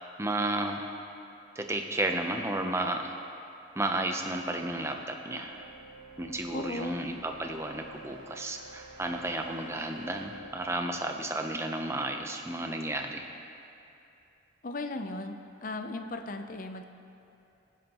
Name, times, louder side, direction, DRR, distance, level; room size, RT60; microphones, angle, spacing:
voice 1, 0.2-0.9 1.5-3.1 3.8-5.7 6.2-13.3, right 1 dB, 15° right, 4 dB, 0.6 m, -32 dB
sound 1, 4.4-12.2, right 3 dB, 55° right, 1.8 m, -51 dB
voice 2, 6.5-7.0 14.6-15.3 15.6-16.8, left 2 dB, 40° left, 6 dB, 0.6 m, -36 dB
18.5 x 10.5 x 3.0 m, 2.8 s
head